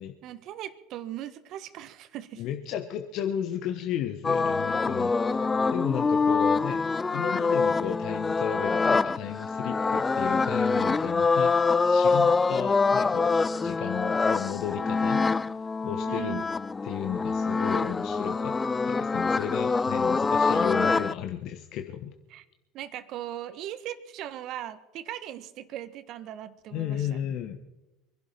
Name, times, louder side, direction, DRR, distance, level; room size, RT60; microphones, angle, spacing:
voice 1, 0.2-2.4 16.1-16.5 22.3-22.4 22.7-27.2, right 12 dB, 55° right, 12 dB, 1.3 m, -39 dB
voice 2, 2.4-13.3 13.6-15.2 15.8-16.5 16.8-18.6 18.9-22.1 26.7-27.6, left 9 dB, 55° left, 7 dB, 1.1 m, -34 dB
sound 1, 4.2-21.1, left 4 dB, 20° left, 0.5 m, -25 dB
24.5 x 11.5 x 4.4 m, 0.97 s
hypercardioid pair, 75°, 0 cm